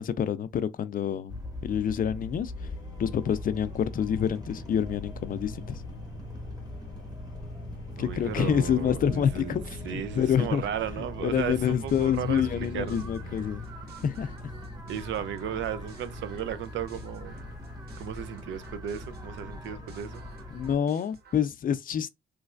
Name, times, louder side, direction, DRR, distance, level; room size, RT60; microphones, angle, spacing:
voice 1, 0.0-2.5 3.0-5.8 8.0-10.6 11.2-13.7 14.0-14.5 20.5-22.1, left 8 dB, 45° left, 0.4 m, -27 dB
sound 1, 1.3-20.8, left 1 dB, 20° right, 1.1 m, -41 dB
sound 2, 2.5-13.5, left 3 dB, 70° left, 0.8 m, -43 dB
voice 2, 8.0-9.6 9.8-13.0 14.9-17.4 18.0-20.2, right 9 dB, 70° right, 0.5 m, -35 dB
sound 3, 11.3-21.4, right 5 dB, 55° right, 1.0 m, -54 dB
3.2 x 3.1 x 2.4 m
cardioid pair, 90°, 20 cm